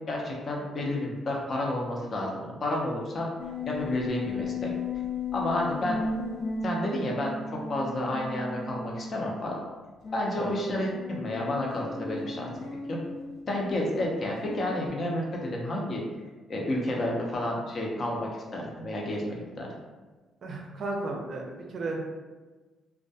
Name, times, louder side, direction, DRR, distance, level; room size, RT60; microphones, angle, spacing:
voice 1, 0.0-3.3 3.7-4.7 5.3-6.0 6.6-9.6 10.1-12.5 12.9-13.0 13.5-16.0 16.5-19.7, left 1 dB, 45° left, -1 dB, 0.6 m, -30 dB
sound 1, 3.4-9.4 10.0-14.9, left 3 dB, 85° left, 0.6 m, -36 dB
voice 2, 20.4-22.0, right 2 dB, 55° right, 1 dB, 0.5 m, -34 dB
2.2 x 2.2 x 2.7 m, 1.3 s
cardioid pair, 90°, 0 cm